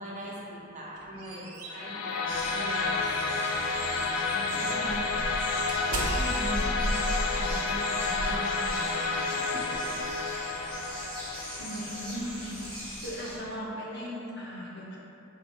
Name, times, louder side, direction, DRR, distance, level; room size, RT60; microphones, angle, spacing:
voice 1, 0.0-3.0 4.3-5.0 6.2-10.1 10.6-10.8 13.6-13.7, equal, 35° right, -5 dB, 0.6 m, -41 dB
sound 1, 0.8-3.7 4.2-4.4 4.9-9.1, right 1 dB, 85° right, 0.5 m, -35 dB
sound 2, 1.7-12.7, left 4 dB, 90° left, 0.3 m, -30 dB
sound 3, 2.3-13.4, equal, 5° left, 1.3 m, -41 dB
voice 2, 4.5-4.9 11.6-12.6 13.0-15.0, equal, 55° left, -6 dB, 0.8 m, -38 dB
4.2 x 3.8 x 2.3 m, 2.8 s
head